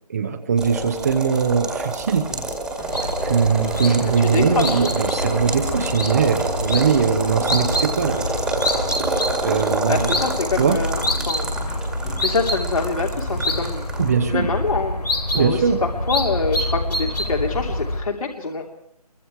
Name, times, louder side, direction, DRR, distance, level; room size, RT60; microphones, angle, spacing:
voice 1, 0.1-2.3 3.2-8.2 9.4-10.1 10.6-10.8 14.0-14.5 15.3-15.8, right 6 dB, 25° right, 5 dB, 1.1 m, -21 dB
sound 1, 0.6-14.1, right 2 dB, 5° right, 2.0 m, -28 dB
sound 2, 2.3-6.5 10.1-14.3, left 3 dB, 15° left, 1.6 m, -41 dB
sound 3, 2.9-18.0, left 1 dB, 90° left, 3.8 m, -26 dB
voice 2, 4.2-4.8 9.9-11.5 12.2-13.9 14.3-15.0 15.3-18.7, left 4 dB, 60° left, 0 dB, 3.1 m, -25 dB
26.5 x 23.5 x 4.7 m, 0.70 s
figure-of-eight pair, 165°, 20 cm